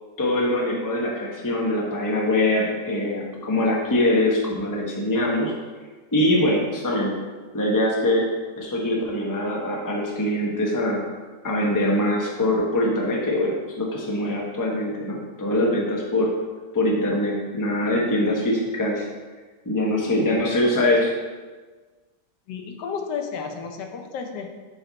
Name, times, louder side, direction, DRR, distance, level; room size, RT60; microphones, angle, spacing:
voice 1, 0.2-5.5 6.1-7.2 7.5-8.2 8.6-11.0 11.4-16.3 16.7-19.1 19.6-21.1, left 1 dB, 15° left, -3 dB, 0.7 m, -23 dB
voice 2, 22.5-24.5, left 6 dB, 90° left, 4 dB, 1.4 m, -32 dB
6.5 x 4.3 x 3.9 m, 1.3 s
omnidirectional pair, 1.8 m